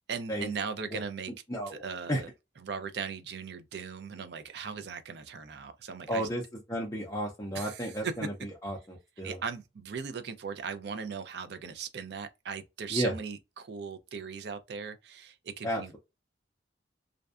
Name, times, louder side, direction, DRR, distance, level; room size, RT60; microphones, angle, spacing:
voice 1, 0.1-1.3 1.7-2.3 2.6-6.3 7.5-8.1 9.2-16.0, right 6 dB, 60° right, 0.4 m, -38 dB
voice 2, 1.5-1.8 2.1-2.2 6.1-6.4 6.7-8.3 8.6-9.4 12.9-13.1 15.6-16.0, equal, 15° left, 0.4 m, -32 dB
2.5 x 2.2 x 2.4 m
head